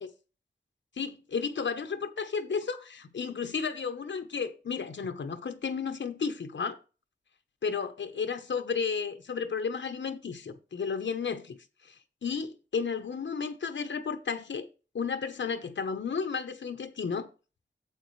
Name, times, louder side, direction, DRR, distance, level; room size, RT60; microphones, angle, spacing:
voice 1, 1.0-6.8 7.6-11.6 11.8-14.7 14.9-17.3, left 5 dB, 90° left, 0.9 m, -33 dB
8.9 x 7.6 x 3.2 m
wide cardioid pair, 110°, 19 cm